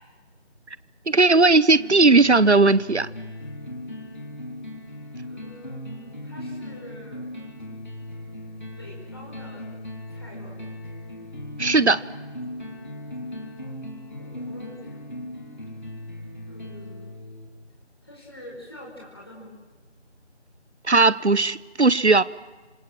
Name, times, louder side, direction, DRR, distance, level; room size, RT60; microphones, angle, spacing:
voice 1, 1.1-3.1 11.6-12.0 20.8-22.2, right 3 dB, 70° right, 18 dB, 1.0 m, -17 dB
sound 1, 1.8-17.7, left 1 dB, 40° left, 3.8 m, -38 dB
voice 2, 5.2-7.3 8.8-9.7 10.1-10.6 14.2-15.0 16.5-17.1 18.0-19.5, equal, 20° left, -4 dB, 5.0 m, -45 dB
28.5 x 27.0 x 7.5 m, 1.3 s
figure-of-eight pair, 175°, 35 cm